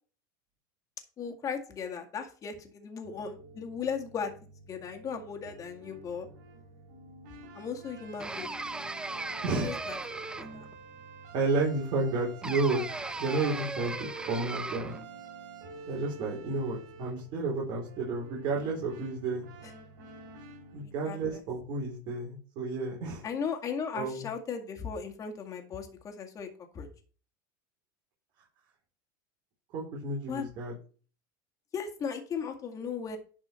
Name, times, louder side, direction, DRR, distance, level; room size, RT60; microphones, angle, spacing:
voice 1, 1.2-4.3 4.7-6.3 7.5-8.5 9.6-10.0 10.4-10.7 20.8-21.4 23.2-26.5 26.7-26.9 30.3-30.5 31.7-33.2, left 6 dB, 30° left, 4 dB, 2.0 m, -37 dB
sound 1, 3.0-20.8, right 4 dB, 75° right, 3.1 m, -49 dB
sound 2, 8.2-10.7 12.4-15.1, right 3 dB, 10° right, 0.4 m, -37 dB
voice 2, 11.3-12.8 13.2-14.9 15.9-19.4 20.7-23.2 23.9-24.2 29.7-30.8, right 3 dB, 50° right, -4 dB, 3.5 m, -31 dB
11.0 x 4.8 x 4.4 m, 0.39 s
supercardioid pair, 125°, 11 cm